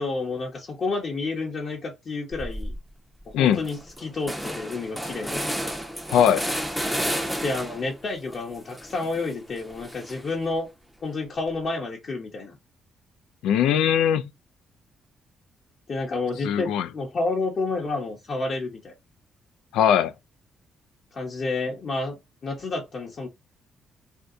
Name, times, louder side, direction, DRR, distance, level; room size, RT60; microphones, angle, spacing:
voice 1, 0.0-2.7 3.3-5.5 7.4-10.7 11.0-12.6 15.9-18.9 21.1-23.3, left 3 dB, 45° left, 0.8 m, -30 dB
sound 1, 2.3-2.8 3.2-3.3 3.5-7.9 8.3-10.4, equal, 5° right, 0.7 m, -32 dB
voice 2, 6.1-6.4 13.4-14.3 16.4-16.9 19.7-20.1, left 9 dB, 90° left, 0.3 m, -20 dB
2.6 x 2.2 x 3.6 m
cardioid pair, 90°, 0 cm